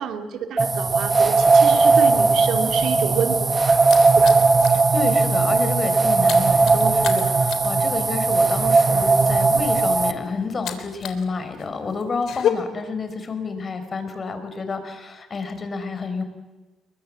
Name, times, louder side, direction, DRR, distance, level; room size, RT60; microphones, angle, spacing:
voice 1, 0.0-3.8 4.1-4.4, right 7 dB, 75° right, 6 dB, 2.8 m, -28 dB
sound 1, 0.6-10.1, right 4 dB, 30° right, 1.7 m, -18 dB
sound 2, 3.1-4.9 5.2-5.4 5.7-11.3 11.5-12.5, left 10 dB, 75° left, 3.2 m, -31 dB
voice 2, 4.7-16.2, left 4 dB, 40° left, 9 dB, 4.8 m, -29 dB
29.5 x 22.5 x 7.7 m, 1.2 s
cardioid pair, 90°, 0 cm